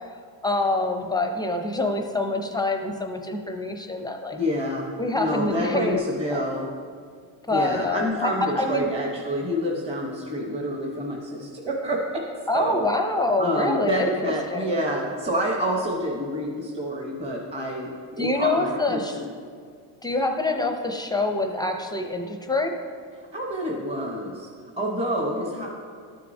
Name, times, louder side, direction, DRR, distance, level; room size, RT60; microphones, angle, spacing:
voice 1, 0.4-4.4 5.0-6.0 6.3-6.4 7.5-8.9 12.5-14.7 18.2-19.2 20.0-22.8, left 2 dB, 10° left, 4 dB, 0.4 m, -26 dB
voice 2, 4.3-6.7 7.5-12.3 12.5-12.8 13.4-19.3 23.3-24.5 24.8-25.7, equal, 15° right, -1 dB, 0.8 m, -28 dB
13.0 x 6.5 x 2.7 m, 2.1 s
cardioid pair, 130°, 48 cm